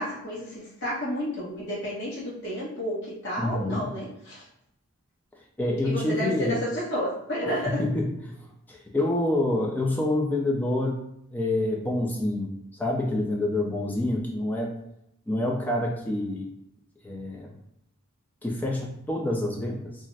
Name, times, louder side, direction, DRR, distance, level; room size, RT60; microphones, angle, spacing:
voice 1, 0.0-4.4 5.8-7.9, equal, 50° left, -7 dB, 1.0 m, -31 dB
voice 2, 3.4-3.9 5.6-6.6 7.7-8.4 8.7-11.0 11.3-12.5 12.8-14.7 15.3-16.5 17.0-17.5 18.4-20.0, left 1 dB, 10° left, -1 dB, 0.4 m, -27 dB
2.5 x 2.0 x 3.8 m, 0.80 s
head